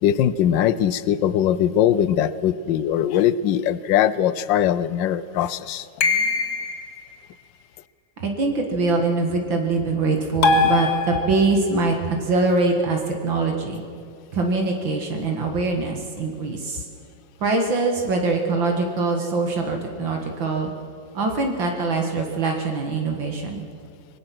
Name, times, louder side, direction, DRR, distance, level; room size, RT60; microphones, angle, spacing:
voice 1, 0.0-5.9, left 10 dB, 75° left, 16 dB, 1.4 m, -21 dB
sound 1, 6.0-6.9 10.4-11.7, left 4 dB, 55° left, 2.0 m, -21 dB
voice 2, 8.2-13.8 14.3-16.8 17.4-20.7 21.1-23.7, right 3 dB, 75° right, 2 dB, 2.7 m, -23 dB
24.5 x 21.0 x 6.1 m, 2.4 s
omnidirectional pair, 2.1 m